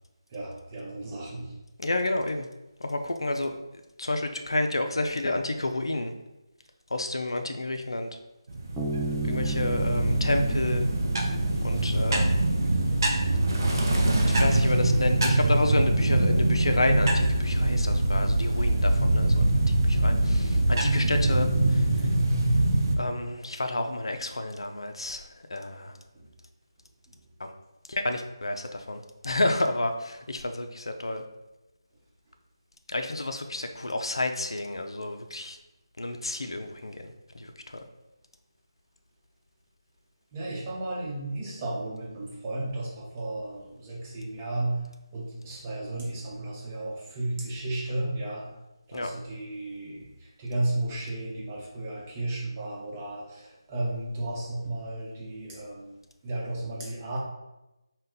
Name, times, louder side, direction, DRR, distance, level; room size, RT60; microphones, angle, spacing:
voice 1, 0.3-1.5 26.1-26.3 40.3-44.9 45.1-48.5 48.9-55.9 56.2-57.3, right 2 dB, 20° right, -4 dB, 0.9 m, -34 dB
voice 2, 1.8-2.5 2.8-3.6 4.0-6.1 6.9-8.1 9.2-10.9 11.6-12.3 14.3-19.4 19.8-22.1 23.0-25.9 27.4-27.5 27.9-31.2 32.9-35.6 36.0-37.8 48.9-49.1, left 2 dB, 75° left, 6 dB, 0.5 m, -30 dB
sound 1, 8.5-23.0, right 1 dB, 50° right, 0.6 m, -23 dB
Bass guitar, 8.8-12.2, right 3 dB, 5° right, 0.4 m, -35 dB
5.2 x 2.2 x 3.8 m, 0.97 s
figure-of-eight pair, 160°, 3 cm